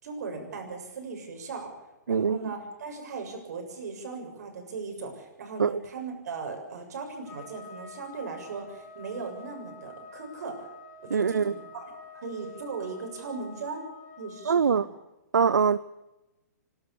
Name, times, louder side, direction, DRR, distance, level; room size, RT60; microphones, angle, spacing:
voice 1, 0.0-1.7 2.1-10.7 11.0-11.8 12.1-13.8 14.2-14.8, right 4 dB, 65° right, 3 dB, 7.1 m, -38 dB
voice 2, 2.1-2.4 5.6-5.8 11.1-11.5 14.5-14.8 15.3-15.8, right 6 dB, 85° right, 17 dB, 0.6 m, -23 dB
Trumpet, 7.2-14.5, left 2 dB, 20° left, 7.6 m, -48 dB
26.0 x 12.5 x 8.6 m, 1.0 s
hypercardioid pair, 130°, 10 cm